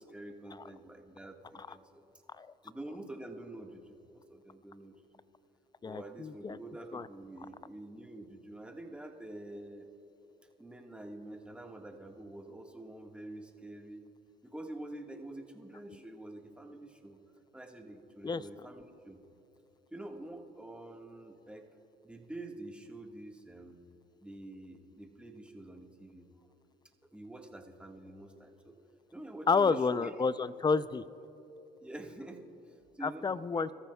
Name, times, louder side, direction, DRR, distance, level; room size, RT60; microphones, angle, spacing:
voice 1, 0.0-2.1 2.6-4.9 5.8-9.9 10.6-14.0 14.4-17.2 17.5-19.2 19.9-21.7 22.0-23.8 24.2-26.3 27.1-28.8 29.1-30.1 31.8-33.7, right 1 dB, 5° right, 2 dB, 1.6 m, -47 dB
voice 2, 5.8-6.6 6.9-7.1 18.2-18.4 29.5-31.0 33.0-33.7, left 4 dB, 25° left, 16 dB, 0.5 m, -30 dB
26.5 x 13.5 x 2.3 m, 3.0 s
supercardioid pair, 70°, 18 cm